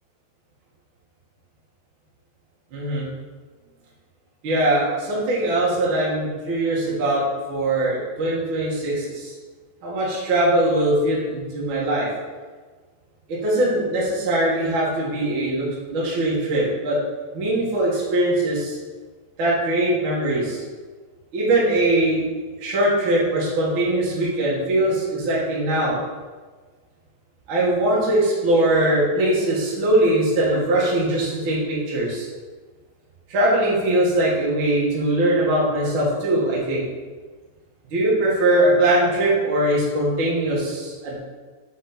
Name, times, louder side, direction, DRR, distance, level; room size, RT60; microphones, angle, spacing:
voice 1, 2.7-3.1 4.4-9.3 9.8-12.1 13.3-17.0 17.3-18.8 19.4-20.6 21.3-22.2 22.6-26.0 27.5-32.3 33.3-36.8 37.9-41.2, right 1 dB, 50° right, -7 dB, 1.5 m, -21 dB
6.5 x 4.1 x 4.3 m, 1.4 s
omnidirectional pair, 5.0 m